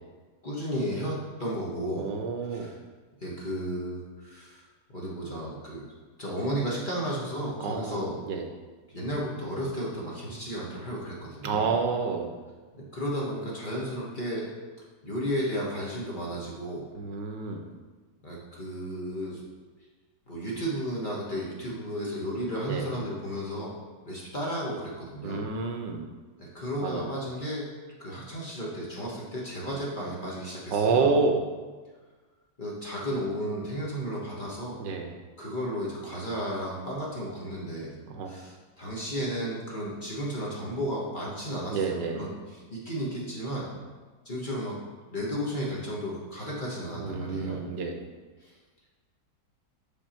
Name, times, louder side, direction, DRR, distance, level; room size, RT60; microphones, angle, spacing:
voice 1, 0.4-2.1 2.5-2.8 3.2-5.8 6.2-8.2 8.9-11.7 12.7-14.5 15.0-16.9 18.2-19.4 20.3-23.8 24.0-25.4 26.4-27.7 28.0-31.1 32.6-34.8 35.4-37.9 38.2-43.7 44.2-44.8 45.1-47.6 48.4-48.5, equal, 30° left, -5 dB, 1.1 m, -33 dB
voice 2, 2.0-2.7 7.6-8.0 8.3-8.5 11.4-12.3 16.9-17.7 22.7-22.9 25.2-26.1 26.8-27.1 30.7-31.4 34.8-35.1 38.1-38.3 41.7-42.3 46.9-48.0, right 4 dB, 75° right, 3 dB, 1.4 m, -28 dB
5.8 x 5.4 x 4.3 m, 1.3 s
omnidirectional pair, 1.9 m